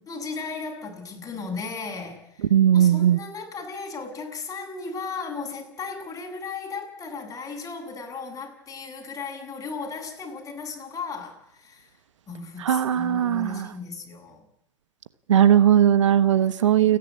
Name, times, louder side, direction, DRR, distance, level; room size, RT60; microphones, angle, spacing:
voice 1, 0.1-11.9 12.3-14.4 16.4-17.0, left 4 dB, 20° left, 3 dB, 7.5 m, -36 dB
voice 2, 2.5-3.2 12.6-13.7 15.3-17.0, right 10 dB, 70° right, 15 dB, 1.2 m, -18 dB
29.5 x 11.0 x 9.7 m, 0.78 s
hypercardioid pair, 95°, 16 cm